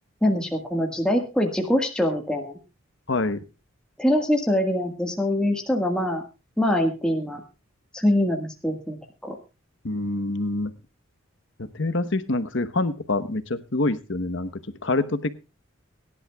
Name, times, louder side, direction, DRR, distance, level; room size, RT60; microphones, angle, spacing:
voice 1, 0.2-2.6 4.0-6.2 6.6-7.4 7.9-9.4, left 1 dB, 5° left, 1 dB, 1.6 m, -24 dB
voice 2, 3.1-3.4 9.8-10.7 11.7-15.3, left 2 dB, 55° left, 12 dB, 1.0 m, -26 dB
23.5 x 11.0 x 2.3 m, 0.29 s
head